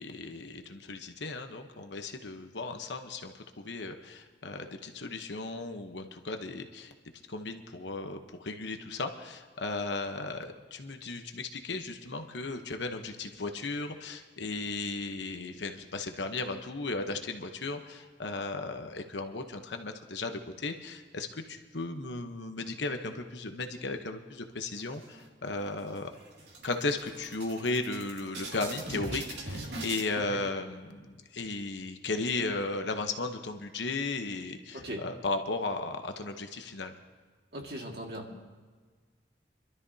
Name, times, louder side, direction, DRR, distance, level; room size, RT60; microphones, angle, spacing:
voice 1, 0.0-6.9 7.3-26.1 26.6-36.9, left 3 dB, 75° left, 6 dB, 1.0 m, -35 dB
sound 1, 24.7-25.5 25.9-26.0 26.3-30.1, right 2 dB, 75° right, 2.4 m, -41 dB
voice 2, 37.5-38.4, equal, 60° right, 0 dB, 2.0 m, -39 dB
25.5 x 12.5 x 2.8 m, 1.5 s
head